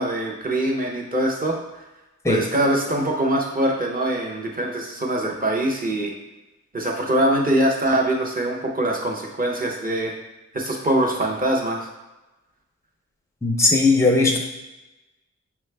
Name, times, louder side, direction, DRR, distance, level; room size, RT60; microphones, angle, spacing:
voice 1, 0.0-1.8 2.3-6.1 6.7-10.1 10.5-11.9, right 1 dB, 30° right, -1 dB, 0.7 m, -23 dB
voice 2, 13.4-14.4, left 3 dB, 10° left, 1 dB, 0.5 m, -18 dB
5.8 x 2.3 x 3.3 m, 1.0 s
wide cardioid pair, 150°, 31 cm